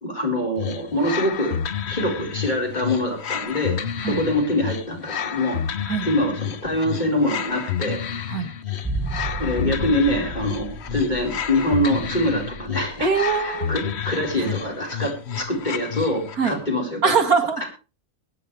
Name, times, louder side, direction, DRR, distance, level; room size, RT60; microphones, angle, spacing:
voice 1, 0.0-1.6 1.9-3.8 4.1-5.6 6.0-8.0 9.4-13.1 13.4-17.1, left 1 dB, 25° left, 0 dB, 4.6 m, -24 dB
sound 1, 0.6-16.5, left 8 dB, 50° left, 1.0 m, -30 dB
sound 2, 8.8-13.1 13.3-13.4, right 2 dB, 5° right, 2.8 m, -33 dB
voice 2, 13.0-13.7 14.4-14.5 16.4-16.6 17.0-17.6, right 5 dB, 65° right, 7 dB, 1.9 m, -22 dB
23.5 x 9.3 x 3.3 m, 0.33 s
omnidirectional pair, 1.7 m